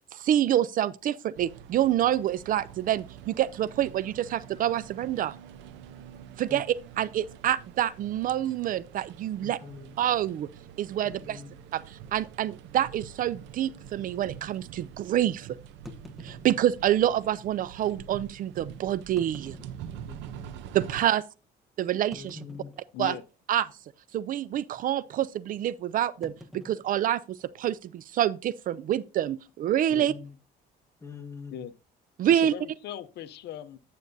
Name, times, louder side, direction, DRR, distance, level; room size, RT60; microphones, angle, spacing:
voice 1, 0.1-5.3 6.4-9.6 10.0-10.5 10.8-11.4 11.7-15.5 16.2-19.6 20.7-21.2 21.8-22.4 23.0-23.2 23.5-23.7 24.1-30.1 32.2-32.5, right 11 dB, 50° right, 0.4 m, -27 dB
sound 1, 1.3-21.0, right 9 dB, 90° right, 0.7 m, -46 dB
voice 2, 9.4-9.9 11.2-11.6 20.1-20.5 22.1-22.7 29.9-30.3 31.0-31.6, left 5 dB, 15° left, 1.5 m, -44 dB
sound 2, 11.1-11.3 12.0-12.2 12.5-12.6 13.2-13.3 15.8-17.1 17.9-18.0 19.0-20.4 21.0-21.1 22.1-23.2 23.5-23.8 24.1-24.4 26.2-27.8, left 1 dB, ahead, 0.9 m, -49 dB
voice 3, 32.3-33.8, left 11 dB, 65° left, 0.7 m, -39 dB
9.2 x 7.7 x 2.6 m
cardioid pair, 125°, 18 cm